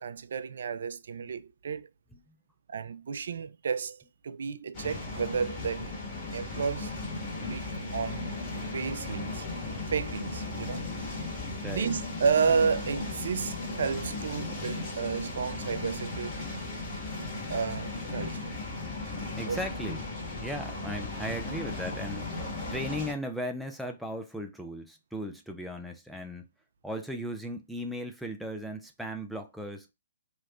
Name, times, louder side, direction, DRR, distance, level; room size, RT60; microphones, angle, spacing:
voice 1, 0.0-1.9 2.7-5.9 6.3-6.9 7.5-8.3 8.7-9.5 9.9-10.8 11.6-16.5 17.5-18.5 19.5-19.6, right 6 dB, 65° right, 0.3 m, -31 dB
sound 1, 4.7-23.1, left 3 dB, 30° left, 1.8 m, -36 dB
voice 2, 11.6-11.9 19.3-20.0 20.4-26.5 26.8-29.9, equal, ahead, 0.4 m, -37 dB
3.1 x 3.0 x 2.4 m
hypercardioid pair, 140°, 0 cm